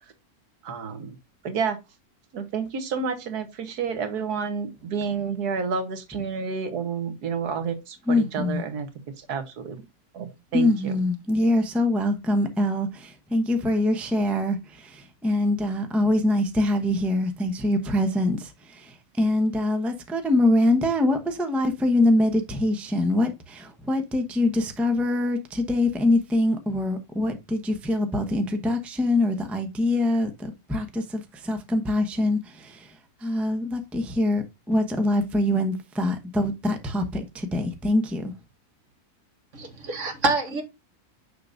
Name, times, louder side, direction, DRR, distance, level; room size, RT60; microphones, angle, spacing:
voice 1, 0.6-1.2 1.4-1.8 2.3-8.9 9.2-9.8 10.1-10.9, right 5 dB, 90° right, 1.6 m, -30 dB
voice 2, 8.1-8.6 10.5-32.9 33.2-38.3, left 1 dB, ahead, 0.6 m, -24 dB
voice 3, 39.5-40.6, right 3 dB, 50° right, 1.9 m, -26 dB
6.6 x 6.5 x 2.5 m
omnidirectional pair, 1.6 m